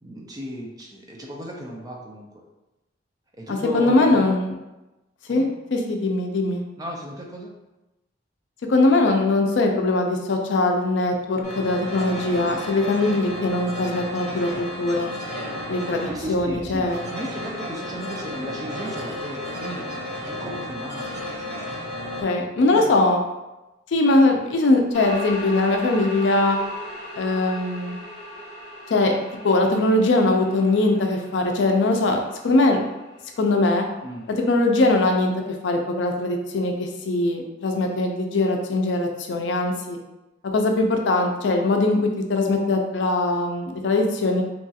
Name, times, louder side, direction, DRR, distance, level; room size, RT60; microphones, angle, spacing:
voice 1, 0.0-2.3 3.4-4.3 5.3-5.5 6.8-7.5 16.0-19.9 20.2-21.2 22.7-22.9 34.0-34.3, equal, 20° right, -1 dB, 0.4 m, -35 dB
voice 2, 3.5-4.6 5.3-5.4 5.7-6.6 8.7-15.1 15.7-17.1 22.2-23.2 23.9-26.6 27.2-28.0 28.9-29.1 29.4-32.8 33.4-33.9 34.5-35.3 35.6-40.0 40.5-44.4, left 2 dB, 75° left, 3 dB, 0.4 m, -21 dB
sound 1, 11.4-22.2, left 1 dB, 65° right, 0.9 m, -33 dB
sound 2, 24.9-34.4, equal, 45° left, 0.9 m, -38 dB
3.0 x 2.3 x 2.7 m, 1.0 s
head